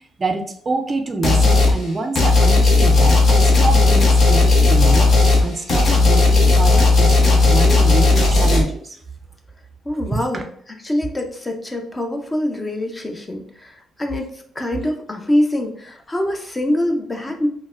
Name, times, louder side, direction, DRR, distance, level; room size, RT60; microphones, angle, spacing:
voice 1, 0.2-5.1 5.4-9.0 10.1-10.5, right 3 dB, 30° right, 5 dB, 0.4 m, -26 dB
sound 1, 1.2-1.8 2.2-8.6, left 3 dB, 55° left, 0.9 m, -14 dB
voice 2, 9.9-10.5 10.8-14.3 14.6-17.5, left 1 dB, 20° left, 3 dB, 0.5 m, -24 dB
3.9 x 2.1 x 2.4 m, 0.62 s
cardioid pair, 90°, 0 cm